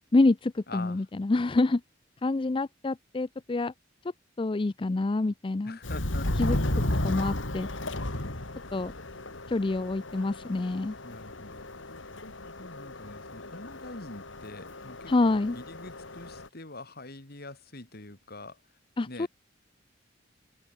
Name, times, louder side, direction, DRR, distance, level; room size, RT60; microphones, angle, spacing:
voice 1, 0.1-1.8 2.2-3.7 4.4-5.8 6.4-7.7 8.7-8.9 9.5-11.0 15.1-15.6 19.0-19.3, left 2 dB, 25° left, 0.4 m, -27 dB
voice 2, 0.7-1.0 5.6-6.3 11.0-11.7 12.6-18.6 19.1-19.3, left 2 dB, 55° left, 3.2 m, -44 dB
Subway metro underground, 5.8-16.5, left 1 dB, 80° left, 3.1 m, -34 dB
head